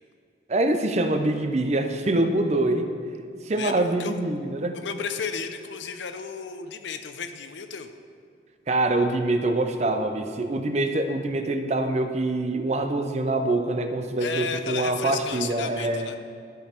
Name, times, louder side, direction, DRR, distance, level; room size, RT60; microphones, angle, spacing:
voice 1, 0.5-2.9 3.4-4.8 8.7-16.1, right 2 dB, 40° right, 7 dB, 0.5 m, -25 dB
voice 2, 3.5-4.1 4.7-7.9 14.2-16.2, left 5 dB, 85° left, 8 dB, 0.6 m, -33 dB
12.5 x 5.3 x 4.4 m, 2.3 s
head